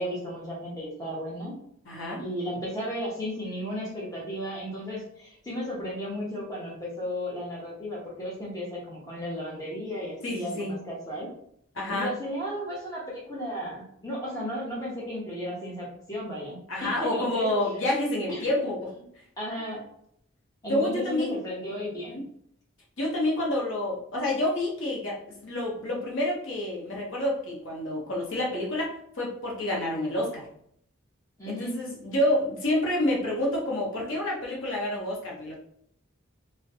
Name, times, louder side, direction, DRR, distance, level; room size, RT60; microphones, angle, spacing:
voice 1, 0.0-1.5 2.2-11.3 11.9-17.5 18.3-18.5 19.4-19.8 20.6-22.2 31.4-31.8, equal, 15° left, -6 dB, 0.7 m, -34 dB
voice 2, 1.9-2.2 10.2-10.8 11.7-12.1 16.7-18.9 20.6-21.4 22.1-22.2 23.0-30.5 31.5-35.6, left 1 dB, 65° left, -3 dB, 0.7 m, -28 dB
2.5 x 2.1 x 2.6 m, 0.68 s
head